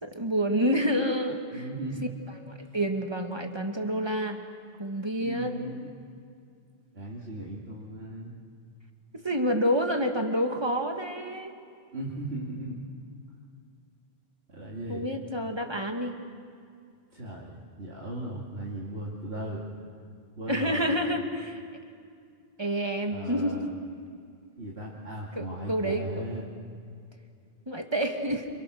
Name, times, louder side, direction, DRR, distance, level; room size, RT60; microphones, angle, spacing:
voice 1, 0.0-1.7 2.4-4.4 4.8-5.7 9.2-11.5 14.9-16.1 20.5-21.6 22.6-23.7 25.4-26.1 27.7-28.5, equal, 25° right, 4 dB, 2.1 m, -28 dB
voice 2, 1.5-2.2 5.2-5.9 6.9-8.4 11.9-12.8 14.5-15.1 17.1-19.6 20.4-20.9 23.1-23.7 24.6-26.4, right 1 dB, 75° right, -6 dB, 3.1 m, -37 dB
28.5 x 27.0 x 6.5 m, 2.3 s
omnidirectional pair, 1.1 m